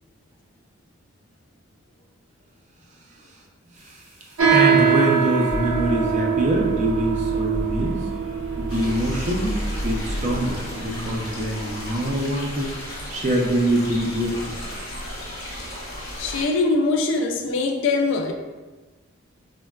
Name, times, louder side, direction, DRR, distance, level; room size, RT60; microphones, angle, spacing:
sound 1, 3.7-11.3, equal, 10° right, 0.8 m, -33 dB
sound 2, 4.4-12.2, right 7 dB, 90° right, 0.5 m, -23 dB
voice 1, 4.5-8.0 8.6-12.7 13.1-14.6, right 1 dB, 35° right, -1 dB, 0.4 m, -24 dB
sound 3, 8.7-16.4, equal, 85° left, 1.1 m, -35 dB
voice 2, 16.2-18.3, left 3 dB, 60° left, 2 dB, 0.3 m, -22 dB
3.8 x 2.1 x 2.2 m, 1.2 s
head